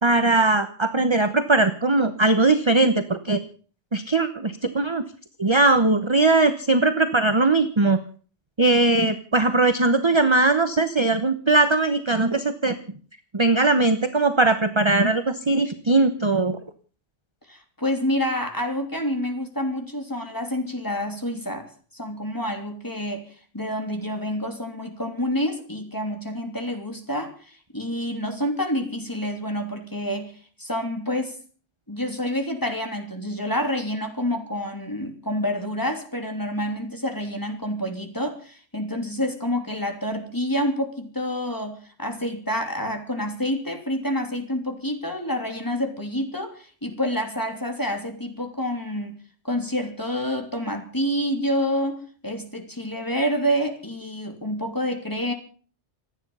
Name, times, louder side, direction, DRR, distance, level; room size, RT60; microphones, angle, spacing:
voice 1, 0.0-3.4 3.9-5.0 5.4-8.0 8.6-12.8 13.3-16.6, right 2 dB, 25° right, 10 dB, 1.0 m, -20 dB
voice 2, 17.5-31.4 31.9-49.1 49.4-55.3, equal, 15° left, 4 dB, 3.2 m, -28 dB
26.5 x 9.8 x 5.6 m, 0.42 s
omnidirectional pair, 1.2 m